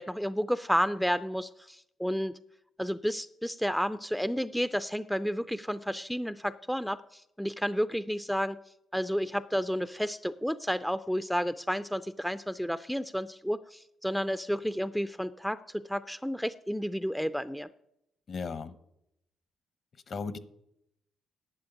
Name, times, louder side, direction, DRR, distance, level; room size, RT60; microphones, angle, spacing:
voice 1, 0.0-2.3 2.8-8.6 8.9-17.7, equal, ahead, 13 dB, 0.4 m, -31 dB
voice 2, 18.3-18.7 20.1-20.4, left 5 dB, 50° left, 14 dB, 1.0 m, -35 dB
10.5 x 7.6 x 9.0 m, 0.81 s
cardioid pair, 90°, 0 cm